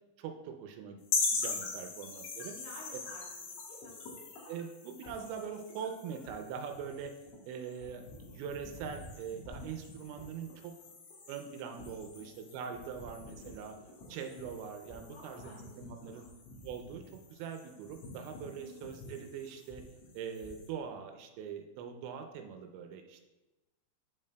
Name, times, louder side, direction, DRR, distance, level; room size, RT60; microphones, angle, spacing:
voice 1, 0.2-2.5 4.5-7.1 7.5-10.7 11.3-13.8 14.1-16.3 16.6-17.0 17.3-19.8 20.1-23.3, right 7 dB, 85° right, 5 dB, 2.9 m, -42 dB
sound 1, 1.1-20.7, left 4 dB, 90° left, 4.0 m, -42 dB
voice 2, 2.6-3.4 3.7-4.0 7.6-8.0 13.0-13.2 15.1-16.3 18.6-18.9, left 1 dB, 65° left, -6 dB, 2.3 m, -53 dB
9.7 x 7.3 x 2.2 m, 1.1 s
omnidirectional pair, 5.5 m